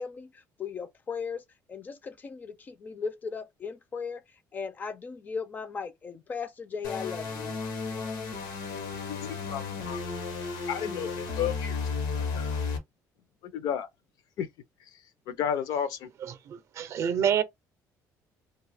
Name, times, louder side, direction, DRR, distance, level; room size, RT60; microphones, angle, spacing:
voice 1, 0.0-1.4 1.7-4.2 4.5-7.6, left 5 dB, 25° left, 0.4 m, -37 dB
sound 1, 6.8-12.8, left 4 dB, 90° left, 1.0 m, -33 dB
voice 2, 9.1-10.0 10.7-11.8 12.2-12.5 13.4-13.9 14.4-14.5 15.3-16.1, left 9 dB, 75° left, 0.5 m, -32 dB
voice 3, 16.5-17.4, right 8 dB, 45° right, 0.5 m, -27 dB
2.7 x 2.3 x 3.3 m
cardioid pair, 165°, 7 cm